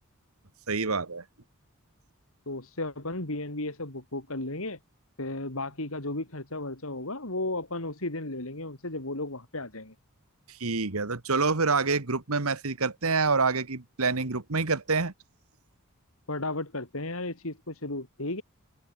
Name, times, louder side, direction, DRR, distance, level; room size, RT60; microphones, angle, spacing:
voice 1, 0.7-1.2 10.6-15.1, right 4 dB, 80° right, 1.7 m, -27 dB
voice 2, 2.5-4.8 5.2-9.9 16.3-18.4, left 2 dB, 70° left, 3.7 m, -34 dB
head